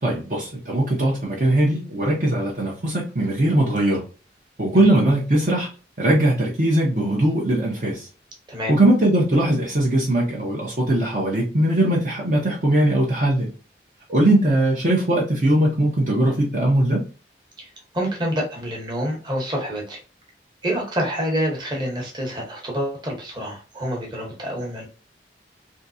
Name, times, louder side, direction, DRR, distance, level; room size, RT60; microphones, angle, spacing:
voice 1, 0.0-4.0 4.6-5.7 6.0-8.1 8.7-13.5 14.1-17.0, right 1 dB, 45° right, -4 dB, 0.8 m, -20 dB
voice 2, 17.6-20.0 20.6-24.8, equal, 25° right, -1 dB, 1.1 m, -27 dB
3.6 x 2.7 x 2.6 m, 0.36 s
head